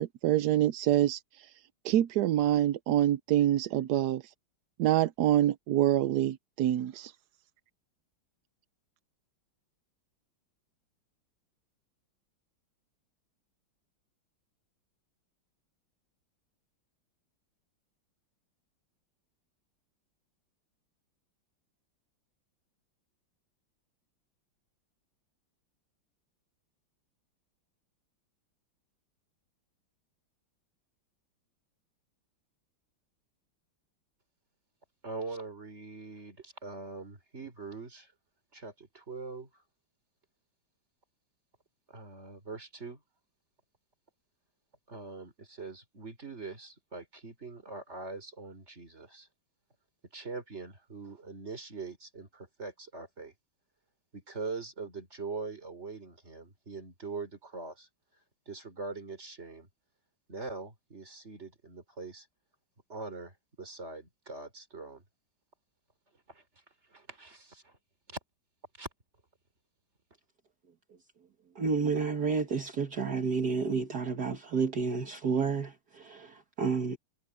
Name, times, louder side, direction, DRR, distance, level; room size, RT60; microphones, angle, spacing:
voice 1, 0.0-1.5 1.8-4.3 4.8-7.1, right 12 dB, 70° right, 1.0 m, -26 dB
voice 2, 35.0-38.1 38.5-39.5 41.9-43.0 44.9-49.3 50.1-53.3 54.1-57.9 58.5-59.7 60.3-62.3 62.9-65.0 66.3-66.4 66.9-67.8 68.1-68.2 68.8-68.9, right 3 dB, 35° right, 4.3 m, -42 dB
voice 3, 71.6-77.0, right 5 dB, 55° right, 2.1 m, -30 dB
omnidirectional pair, 2.2 m